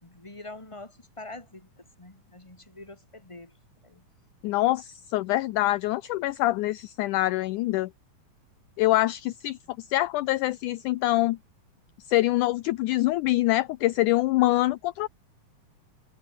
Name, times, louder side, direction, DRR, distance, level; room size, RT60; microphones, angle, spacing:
voice 1, 0.0-3.5 3.8-4.0, left 2 dB, 10° left, 3.8 m, -45 dB
voice 2, 4.4-7.9 8.8-11.4 12.1-15.1, left 17 dB, 75° left, 2.0 m, -25 dB
omnidirectional pair, 4.0 m